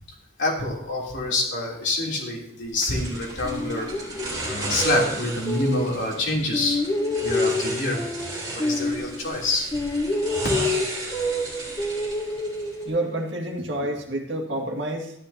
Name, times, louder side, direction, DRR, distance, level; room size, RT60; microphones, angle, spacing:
voice 1, 0.4-3.9 4.4-6.8 7.2-8.0 8.5-9.7, left 2 dB, 60° left, -3 dB, 3.2 m, -26 dB
sound 1, 2.8-12.9, right 2 dB, 20° right, 3.7 m, -35 dB
sound 2, 3.4-6.2 6.5-9.5 9.7-13.2, left 1 dB, 15° left, 0.6 m, -28 dB
voice 2, 12.9-15.1, right 1 dB, 60° right, 1 dB, 2.0 m, -28 dB
13.0 x 11.0 x 2.8 m, 0.74 s
head